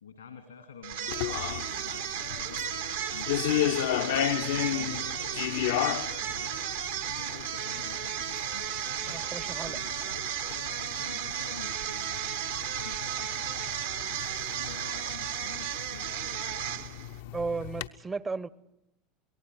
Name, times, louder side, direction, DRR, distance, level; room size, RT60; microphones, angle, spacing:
voice 1, 0.0-2.8 3.1-4.1 4.5-6.7 7.0-9.2 9.7-13.8 14.5-16.6, left 6 dB, 80° left, 5 dB, 2.1 m, -48 dB
sound 1, 0.8-17.2, right 9 dB, 70° right, 1.2 m, -34 dB
sound 2, 1.1-17.9, left 11 dB, 65° left, 0.7 m, -35 dB
voice 2, 9.1-9.8 17.3-18.5, right 4 dB, 20° right, 20 dB, 0.7 m, -34 dB
28.0 x 18.5 x 6.2 m, 0.82 s
figure-of-eight pair, 75°, 0 cm